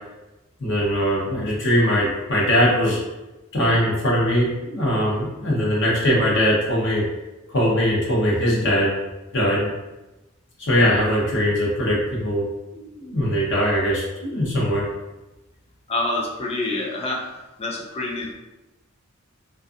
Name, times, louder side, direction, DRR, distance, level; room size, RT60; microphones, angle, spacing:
voice 1, 0.6-3.0 3.5-7.0 7.5-9.0 9.3-9.7 10.6-12.4 12.7-14.8, equal, 60° left, -5 dB, 0.7 m, -21 dB
voice 2, 15.9-17.3 17.6-18.3, left 2 dB, 30° left, -1 dB, 0.4 m, -26 dB
2.6 x 2.3 x 2.3 m, 1.1 s
head